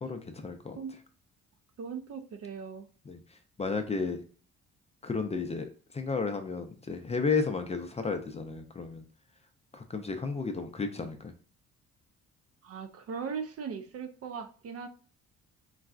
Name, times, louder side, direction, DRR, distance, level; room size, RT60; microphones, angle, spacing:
voice 1, 0.0-0.8 3.1-4.2 5.0-9.0 9.7-11.3, left 4 dB, 20° left, 6 dB, 0.4 m, -33 dB
voice 2, 1.8-2.9 12.6-14.9, right 6 dB, 50° right, 7 dB, 0.5 m, -39 dB
3.9 x 2.2 x 2.4 m, 0.40 s
cardioid pair, 90°, 30 cm